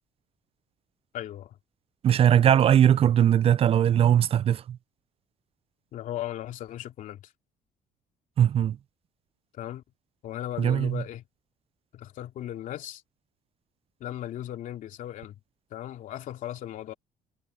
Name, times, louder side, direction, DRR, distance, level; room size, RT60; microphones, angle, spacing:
voice 1, 1.1-1.6 5.9-7.3 9.5-9.8 10.2-11.2 11.9-13.0 14.0-15.3 15.7-16.9, left 12 dB, 65° left, 2.9 m, -37 dB
voice 2, 2.0-4.8 8.4-8.8 10.6-11.0, right 10 dB, 45° right, 0.4 m, -20 dB
cardioid pair, 105°, 14 cm